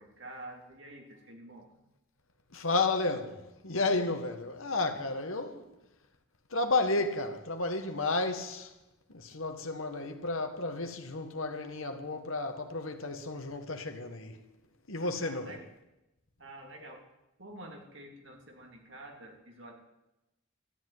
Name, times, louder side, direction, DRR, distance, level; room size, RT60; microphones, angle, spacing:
voice 1, 0.0-1.7 15.1-15.6 16.4-17.0 17.4-19.7, right 1 dB, 65° right, 3.2 m, -48 dB
voice 2, 2.5-5.7 6.5-8.7 9.1-14.4 14.9-15.6, left 3 dB, 80° left, 1.8 m, -32 dB
13.5 x 10.5 x 9.7 m
head